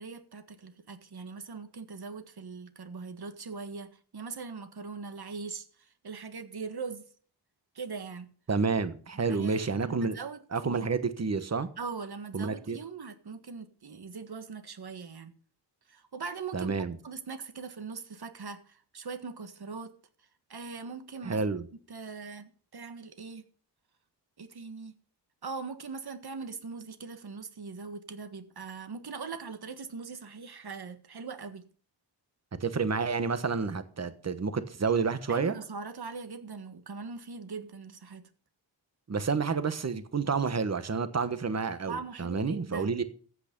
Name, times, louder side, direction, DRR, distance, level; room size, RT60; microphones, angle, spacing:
voice 1, 0.0-7.1 7.8-8.3 9.3-10.4 10.7-10.9 11.8-15.3 15.9-16.7 17.0-20.0 20.5-21.4 21.9-23.4 24.4-24.9 25.4-31.7 35.3-38.3 41.9-43.0, right 5 dB, 55° right, 1.7 m, -41 dB
voice 2, 8.5-10.2 10.5-11.7 12.3-12.8 16.5-17.0 21.2-21.6 32.6-35.5 39.1-43.0, right 4 dB, 35° right, 1.2 m, -29 dB
14.5 x 8.9 x 5.3 m
wide cardioid pair, 105°, 44 cm